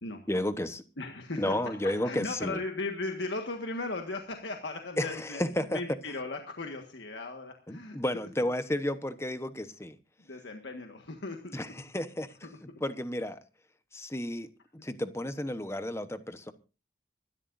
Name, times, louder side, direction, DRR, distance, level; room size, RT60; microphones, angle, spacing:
voice 1, 0.3-0.8 1.4-2.6 5.0-5.8 7.7-10.0 11.5-11.7 11.9-12.3 12.8-13.4 13.9-14.5 14.8-16.5, left 1 dB, 15° left, 1.0 m, -32 dB
voice 2, 1.0-5.4 5.7-8.0 10.2-11.6 12.4-12.5, left 2 dB, 75° left, 1.6 m, -37 dB
25.5 x 12.5 x 2.6 m
head